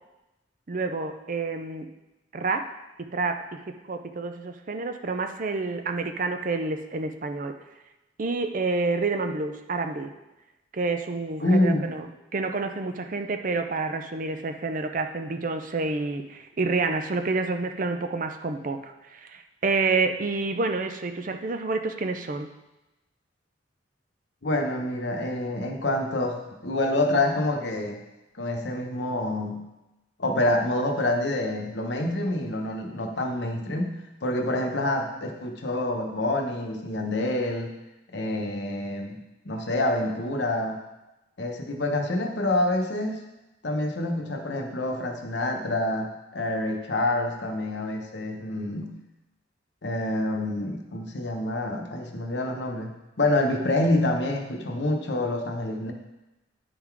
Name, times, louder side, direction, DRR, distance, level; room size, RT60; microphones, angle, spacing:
voice 1, 0.7-1.9 2.3-2.7 3.0-7.5 8.2-10.1 10.7-22.5, right 3 dB, 45° right, 7 dB, 0.5 m, -29 dB
voice 2, 11.4-11.9 24.4-28.0 28.4-29.6 30.2-33.9 34.2-37.7 38.1-39.2 39.4-40.8 41.4-43.2 43.6-48.9 49.8-52.9 53.2-55.9, left 1 dB, 60° left, 2 dB, 1.0 m, -27 dB
9.5 x 3.9 x 4.6 m, 0.99 s
head